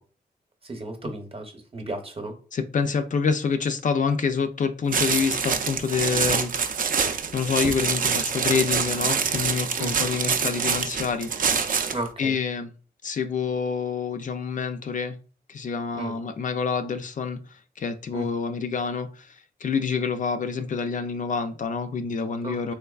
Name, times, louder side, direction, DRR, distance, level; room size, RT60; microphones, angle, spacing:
voice 1, 0.6-2.4 9.8-9.9 11.9-12.4 15.9-16.1 18.1-18.3 22.4-22.7, right 2 dB, 35° right, 5 dB, 0.8 m, -34 dB
voice 2, 2.5-6.5 7.3-11.3 12.2-12.7 13.0-15.2 15.5-17.4 17.8-19.4 19.6-22.7, left 5 dB, 50° left, 8 dB, 0.4 m, -27 dB
sound 1, 4.9-12.1, right 6 dB, 55° right, 0.4 m, -25 dB
3.3 x 3.0 x 2.3 m, 0.37 s
cardioid pair, 85°, 17 cm